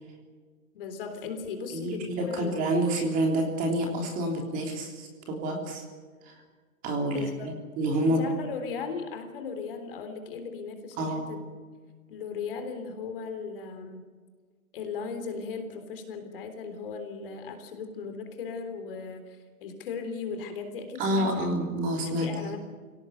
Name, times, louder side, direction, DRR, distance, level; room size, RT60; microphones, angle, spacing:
voice 1, 0.7-2.7 7.0-7.5 8.1-11.6 12.1-14.1 14.7-21.5 22.0-22.6, left 5 dB, 40° left, 7 dB, 3.6 m, -37 dB
voice 2, 1.7-5.8 6.2-6.4 6.8-7.3 7.8-8.3 11.0-11.3 21.0-22.4, right 1 dB, 20° right, 2 dB, 3.3 m, -28 dB
25.5 x 17.5 x 8.1 m, 1.5 s
hypercardioid pair, 155°, 43 cm